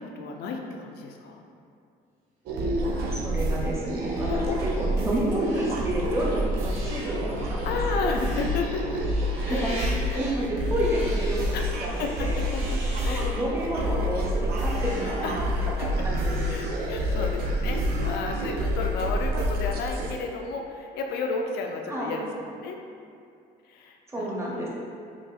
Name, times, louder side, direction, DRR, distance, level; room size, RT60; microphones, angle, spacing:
voice 1, 0.0-1.4 4.3-4.6 7.6-9.0 9.4-9.8 10.1-10.3 11.5-11.7 12.0-13.3 15.2-15.3 15.8-16.1 16.5-22.8 23.6-24.7, left 4 dB, 70° left, 2 dB, 0.4 m, -33 dB
sound 1, 2.5-20.1, equal, 65° right, 0.4 m, -28 dB
sound 2, 2.8-18.7, right 1 dB, 40° right, 1.1 m, -44 dB
voice 2, 3.1-4.4 4.8-8.1 9.5-9.8 10.1-12.4 13.1-15.5 15.8-16.6 21.9-22.2 24.1-24.7, right 1 dB, 15° right, -4 dB, 0.7 m, -30 dB
3.9 x 2.4 x 2.3 m, 2.4 s
cardioid pair, 110°, 17 cm